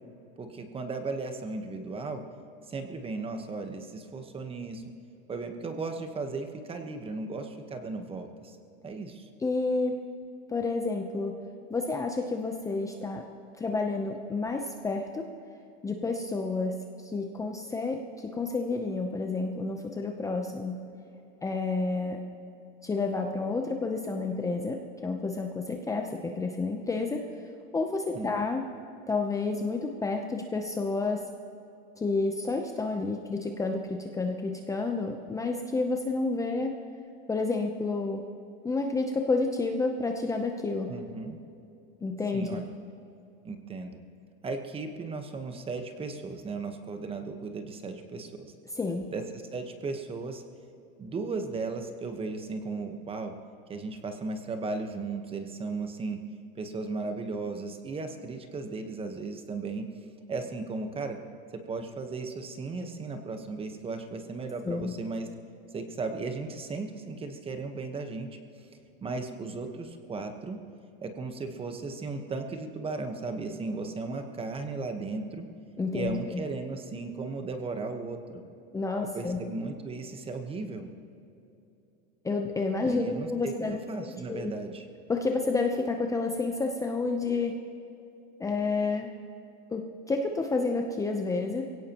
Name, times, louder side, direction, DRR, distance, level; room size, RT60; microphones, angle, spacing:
voice 1, 0.4-2.2 2.7-4.8 5.3-8.6 8.8-9.3 28.1-28.3 40.9-41.4 42.3-42.7 43.4-44.0 44.4-48.5 49.1-49.2 49.5-50.4 51.0-53.3 53.7-56.2 56.5-59.8 60.3-61.2 61.7-65.3 65.7-68.3 69.0-70.6 71.0-75.4 75.9-78.4 79.0-80.9 82.8-84.9, right 3 dB, 20° right, 6 dB, 1.2 m, -36 dB
voice 2, 9.4-10.0 10.5-11.3 11.7-13.3 13.6-15.3 15.8-20.7 21.4-22.2 22.8-27.4 27.7-28.7 29.1-31.3 32.0-36.8 37.3-38.2 38.6-40.9 42.0-42.6 48.7-49.1 64.6-64.9 75.8-76.4 78.7-79.4 82.2-83.8 84.3-84.5 85.1-87.6 88.4-89.1 89.7-91.6, left 3 dB, 10° left, 3 dB, 0.8 m, -30 dB
22.0 x 17.0 x 3.0 m, 2.8 s
supercardioid pair, 130°, 29 cm